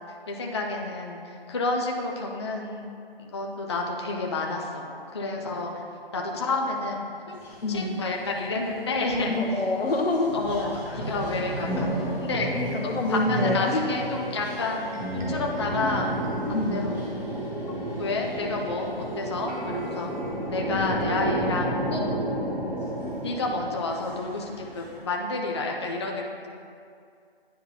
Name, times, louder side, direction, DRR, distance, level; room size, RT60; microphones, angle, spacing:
voice 1, 0.3-2.8 3.2-4.8 5.1-5.8 6.1-7.4 7.7-9.3 10.3-12.5 13.1-16.1 16.5-17.0 17.7-20.1 20.4-22.0 23.2-26.5, left 3 dB, 30° left, 0 dB, 0.4 m, -30 dB
sound 1, 7.4-9.0 9.6-25.0, right 1 dB, 5° right, 1.4 m, -32 dB
voice 2, 7.6-8.0 9.3-11.0 12.5-13.9 16.5-17.0 20.7-21.0, left 2 dB, 85° left, 2 dB, 0.9 m, -27 dB
sound 2, 13.7-21.8, right 1 dB, 35° right, 1.0 m, -45 dB
10.0 x 3.7 x 2.8 m, 2.4 s
figure-of-eight pair, 150°, 30 cm